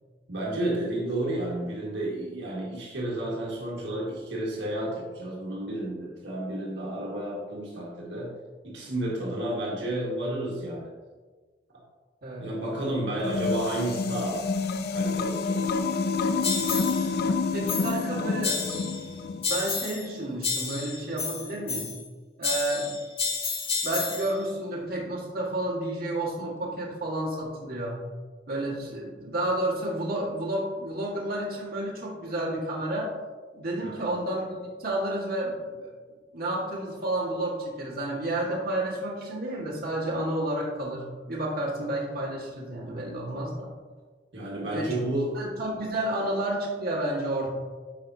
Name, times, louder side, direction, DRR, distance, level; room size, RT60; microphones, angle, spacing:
voice 1, 0.3-8.3 8.6-10.9 12.4-14.4 14.9-15.6 33.8-34.1 44.3-45.3, right 1 dB, 70° right, -5 dB, 1.7 m, -31 dB
sound 1, 13.2-19.5, left 4 dB, 60° left, 0.4 m, -28 dB
sound 2, 16.4-17.1 17.7-18.1 18.4-19.1 19.4-20.1 20.4-22.1 22.4-24.3, left 5 dB, 30° left, 0.9 m, -31 dB
voice 2, 17.5-18.6 19.5-21.9 22.4-23.0 23.8-28.0 28.5-33.1 33.5-35.9 36.3-43.7 44.6-44.9 45.3-47.5, right 1 dB, 55° right, -5 dB, 1.7 m, -31 dB
11.0 x 4.5 x 2.8 m, 1.4 s
head